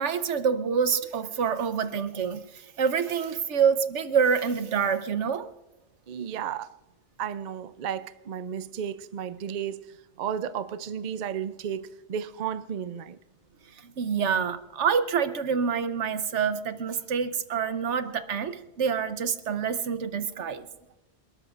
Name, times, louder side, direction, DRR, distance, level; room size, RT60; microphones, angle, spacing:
voice 1, 0.0-5.5 13.8-20.6, right 6 dB, 85° right, 1.2 m, -27 dB
voice 2, 6.1-6.8 7.2-13.2, right 8 dB, 50° right, 0.6 m, -33 dB
27.0 x 13.0 x 2.5 m
omnidirectional pair, 1.2 m